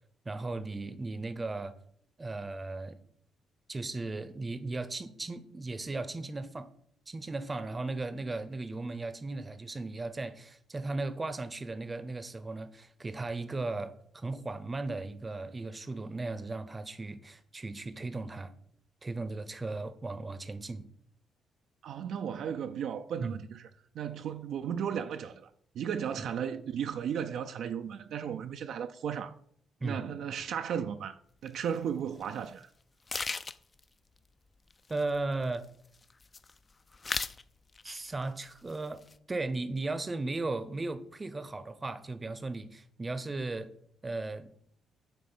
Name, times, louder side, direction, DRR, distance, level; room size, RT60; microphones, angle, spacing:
voice 1, 0.2-1.7 2.2-3.0 3.7-6.7 7.1-18.5 19.0-20.9 23.2-23.4 26.2-26.3 29.8-30.0 34.9-35.7 37.8-39.0 39.3-43.7 44.0-44.5, right 3 dB, 25° right, 0.7 m, -36 dB
voice 2, 21.8-23.7 23.9-29.3 29.8-32.7, right 8 dB, 70° right, 0.4 m, -35 dB
sound 1, 31.5-31.6 32.2-32.4 32.6-32.7 33.1-33.8 34.7-35.6 35.9-36.6 36.9-37.4 37.7-38.2 38.5-39.2, left 4 dB, 30° left, 0.4 m, -37 dB
7.8 x 3.1 x 6.1 m
cardioid pair, 90°, 0 cm